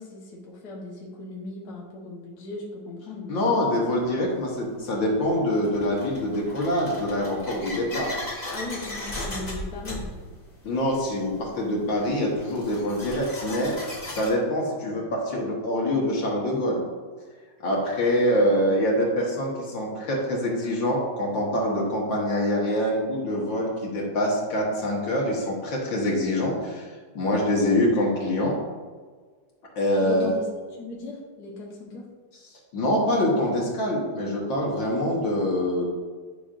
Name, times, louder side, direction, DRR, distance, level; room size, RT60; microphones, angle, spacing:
voice 1, 0.0-3.8 8.5-10.1 30.0-32.1, left 3 dB, 55° left, -4 dB, 1.7 m, -38 dB
voice 2, 3.3-8.1 10.6-13.7 14.1-16.8 17.6-26.9 27.2-28.6 29.8-30.3 32.7-35.9, left 1 dB, 70° left, -3 dB, 2.1 m, -25 dB
sound 1, 3.9-4.0 4.9-14.3, left 1 dB, 20° left, 1.6 m, -37 dB
10.0 x 5.8 x 2.5 m, 1.5 s
omnidirectional pair, 2.2 m